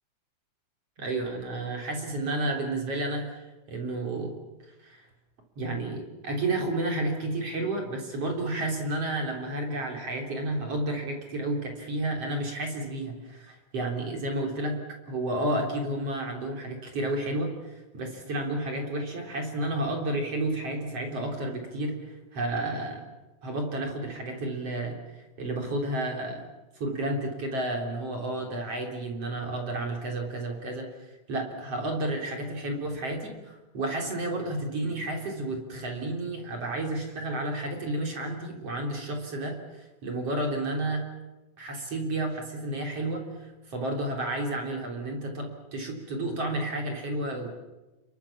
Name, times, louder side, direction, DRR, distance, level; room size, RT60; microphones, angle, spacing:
voice 1, 1.0-4.3 4.8-5.0 5.6-14.8 15.1-21.9 22.3-23.0 23.4-26.4 26.8-30.9 31.3-41.0 41.6-47.5, right 1 dB, 40° right, 1 dB, 4.4 m, -31 dB
29.0 x 22.5 x 7.3 m, 1.1 s
omnidirectional pair, 4.4 m